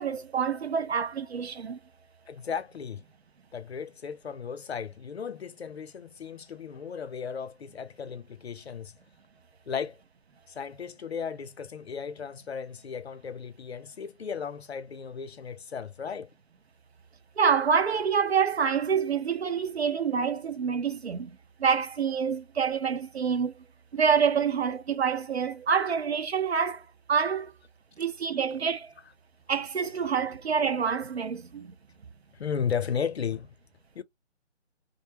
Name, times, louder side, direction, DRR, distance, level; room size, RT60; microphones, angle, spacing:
voice 1, 0.0-1.8 17.4-23.6 23.9-27.5 28.0-28.9 29.5-31.7, right 6 dB, 60° right, 0.6 m, -27 dB
voice 2, 2.3-3.0 3.5-8.9 9.7-10.0 10.5-16.3 32.4-33.5 33.9-34.0, left 7 dB, 60° left, 0.5 m, -35 dB
2.5 x 2.1 x 2.7 m
figure-of-eight pair, 155°, 35 cm